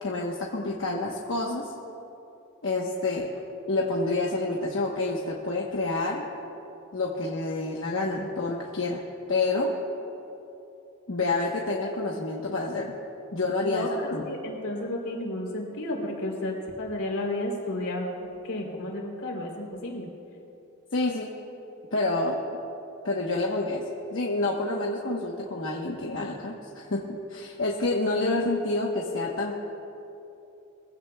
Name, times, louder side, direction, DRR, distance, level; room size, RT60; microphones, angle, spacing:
voice 1, 0.0-1.7 2.6-3.3 3.7-6.2 6.9-9.0 9.3-9.7 11.1-13.0 13.3-14.2 20.9-21.3 21.9-22.4 23.0-23.8 24.1-29.5, left 2 dB, 60° left, -2 dB, 1.0 m, -28 dB
voice 2, 14.2-18.2 18.4-20.1 28.1-28.3, left 1 dB, 85° left, 0 dB, 3.2 m, -32 dB
22.5 x 15.5 x 2.3 m, 2.9 s
head